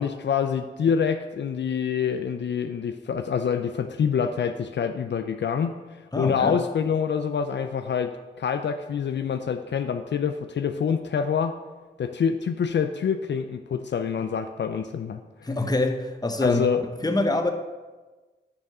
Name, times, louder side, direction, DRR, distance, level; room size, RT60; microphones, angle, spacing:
voice 1, 0.0-11.6 12.0-15.5 16.4-16.8, left 7 dB, 65° left, 8 dB, 0.4 m, -26 dB
voice 2, 6.1-6.6 15.4-16.7 17.0-17.5, left 2 dB, 20° left, 5 dB, 0.9 m, -25 dB
9.3 x 3.5 x 5.4 m, 1.3 s
cardioid pair, 45°, 19 cm